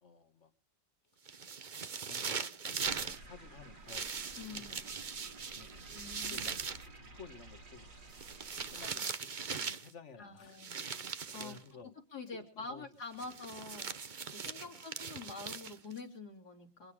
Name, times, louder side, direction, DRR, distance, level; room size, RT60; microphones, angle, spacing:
voice 1, 0.0-0.5 1.7-4.1 4.4-4.9 5.5-5.9 6.3-7.9 8.7-10.6 11.4-11.9 12.3-12.9 13.2-13.3 14.6-14.8, left 5 dB, 40° left, 11 dB, 1.8 m, -54 dB
sound 1, 1.3-3.2 3.9-6.9 8.1-9.9 10.6-11.6 13.2-16.0, right 5 dB, 40° right, 0.7 m, -40 dB
sound 2, 2.8-8.9, right 2 dB, 75° right, 4.4 m, -53 dB
voice 2, 4.4-4.9 5.9-6.5 10.2-10.7 11.3-11.6 12.1-16.9, left 4 dB, 55° left, 3 dB, 3.8 m, -46 dB
28.0 x 9.5 x 5.0 m, 0.37 s
omnidirectional pair, 2.0 m